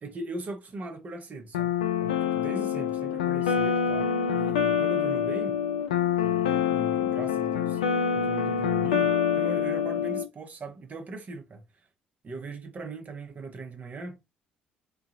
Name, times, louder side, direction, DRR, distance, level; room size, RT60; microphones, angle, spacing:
voice 1, 0.0-1.7 2.0-5.6 6.2-7.8 8.1-11.7 12.2-14.2, right 2 dB, 40° right, 0.8 m, -39 dB
sound 1, 1.5-10.3, left 7 dB, 85° left, 0.3 m, -26 dB
2.7 x 2.4 x 2.4 m
hypercardioid pair, 50°, 4 cm